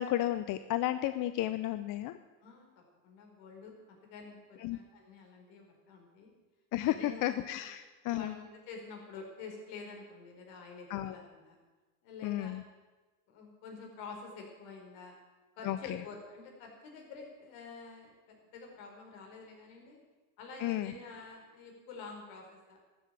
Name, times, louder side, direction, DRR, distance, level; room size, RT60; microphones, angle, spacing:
voice 1, 0.0-2.1 4.6-4.8 6.7-7.0 7.2-8.4 10.9-11.2 12.2-12.6 15.6-15.8 20.6-20.9, left 14 dB, 45° left, 12 dB, 0.6 m, -32 dB
voice 2, 2.4-6.3 6.9-7.4 8.0-11.6 12.0-12.6 13.3-15.1 15.6-20.0 20.4-22.8, left 4 dB, 65° left, 1 dB, 4.6 m, -48 dB
12.5 x 7.7 x 9.4 m, 1.2 s
supercardioid pair, 105°, 47 cm